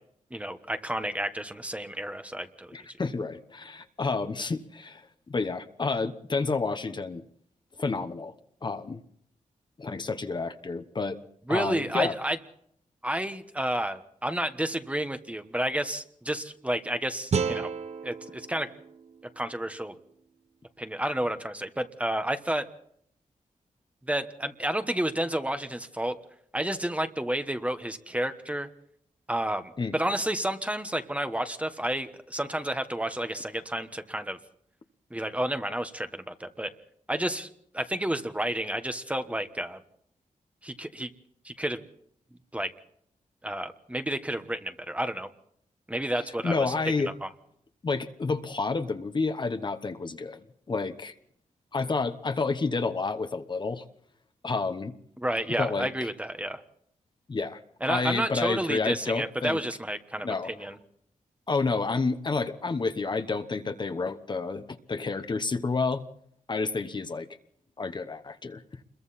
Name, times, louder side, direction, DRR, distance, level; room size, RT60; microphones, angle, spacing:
voice 1, 0.3-2.8 11.5-12.4 13.0-17.7 18.0-18.7 19.4-19.9 20.8-22.7 24.1-26.2 26.5-28.7 29.3-34.4 35.1-36.7 37.1-37.5 37.7-39.8 40.6-41.1 41.4-41.8 42.5-42.7 43.4-45.3 45.9-46.7 47.2-47.3 55.2-56.6 57.8-60.8, right 1 dB, 10° right, 8 dB, 1.2 m, -30 dB
voice 2, 2.7-7.2 7.8-8.3 8.6-9.0 9.8-11.2 11.5-12.1 29.8-29.9 46.4-47.1 47.8-50.4 50.7-51.1 51.7-53.9 54.4-54.9 55.6-56.1 57.3-57.6 57.9-59.6 60.2-60.5 61.5-66.0 66.5-67.3 67.8-68.6, left 4 dB, 35° left, 8 dB, 1.1 m, -30 dB
sound 1, 17.3-20.4, right 5 dB, 55° right, 1.0 m, -33 dB
28.5 x 22.0 x 4.2 m, 0.68 s
wide cardioid pair, 145°, 14 cm